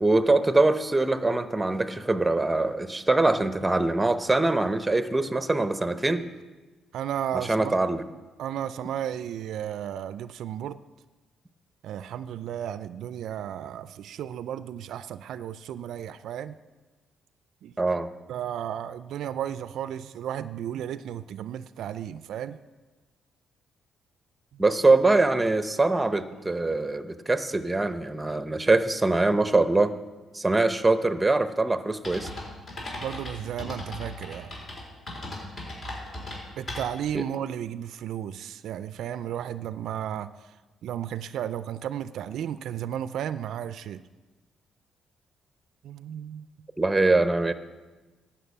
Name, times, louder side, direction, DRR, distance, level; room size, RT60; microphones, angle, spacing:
voice 1, 0.0-6.2 7.5-8.0 17.8-18.1 24.6-29.9 30.3-32.3 37.1-37.2 46.8-47.5, right 2 dB, 15° right, 11 dB, 0.7 m, -23 dB
voice 2, 6.9-7.7 8.4-10.8 11.8-16.6 17.6-17.7 18.3-22.6 33.0-34.5 36.6-40.5 40.8-44.0 45.8-46.5, right 10 dB, 75° right, 14 dB, 0.3 m, -34 dB
sound 1, 32.0-37.1, left 1 dB, 50° left, 4.1 m, -37 dB
11.0 x 5.9 x 8.2 m, 1.2 s
cardioid pair, 90°, 0 cm